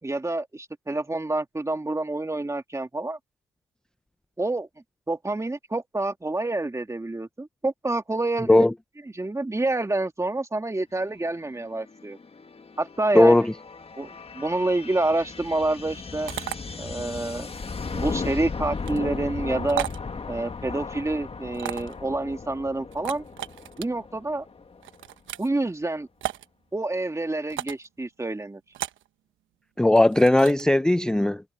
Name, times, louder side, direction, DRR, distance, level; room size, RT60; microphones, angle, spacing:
voice 1, 0.0-3.2 4.4-4.7 5.1-8.6 9.1-12.2 12.8-13.4 14.0-14.1 14.3-16.3 16.8-17.5 17.9-19.9 20.3-23.3 23.8-24.5 25.4-26.1 26.7-28.6, right 2 dB, 15° right, 2.2 m, -28 dB
sound 1, 11.6-25.0, left 4 dB, 30° left, 1.8 m, -36 dB
voice 2, 13.1-13.5 29.8-31.4, left 1 dB, 5° left, 0.4 m, -17 dB
sound 2, 16.3-16.6 18.8-19.0 19.7-20.0 21.5-22.0 22.9-23.9 24.8-25.5 26.2-26.5 27.5-27.9 28.7-29.1 30.0-30.6, right 13 dB, 75° right, 1.1 m, -34 dB
cardioid pair, 90°, 20 cm